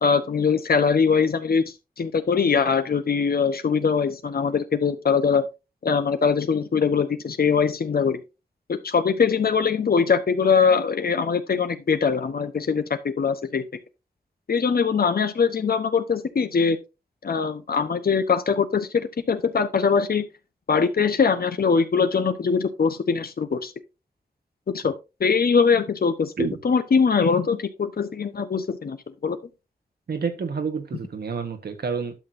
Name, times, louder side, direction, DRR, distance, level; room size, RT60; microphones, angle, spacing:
voice 1, 0.0-1.6 2.0-5.4 5.8-8.2 8.7-13.7 14.5-16.8 17.2-20.3 20.7-23.7 24.7-24.9 25.2-26.3 26.6-29.0 29.2-29.4, left 5 dB, 70° left, 1.0 m, -22 dB
voice 2, 30.1-32.1, right 5 dB, 80° right, 1.4 m, -28 dB
12.0 x 6.1 x 2.7 m
cardioid pair, 55°, 16 cm